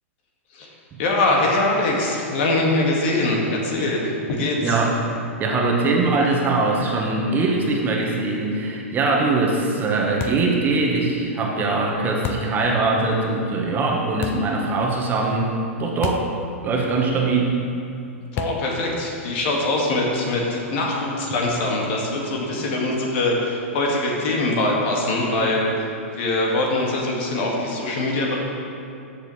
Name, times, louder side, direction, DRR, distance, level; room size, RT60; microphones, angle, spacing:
voice 1, 1.0-4.8 18.3-25.9 26.1-28.4, left 2 dB, 55° left, -2 dB, 2.1 m, -23 dB
voice 2, 4.6-5.0 5.4-15.5 15.8-16.3 16.6-17.6, right 3 dB, 25° right, -1 dB, 1.3 m, -22 dB
sound 1, 10.2-10.6 12.2-12.6 14.2-14.6 16.0-16.4 16.7-16.8 18.4-18.8, left 7 dB, 30° left, 0.5 m, -30 dB
14.0 x 6.7 x 3.3 m, 2.6 s
hypercardioid pair, 110°, 8 cm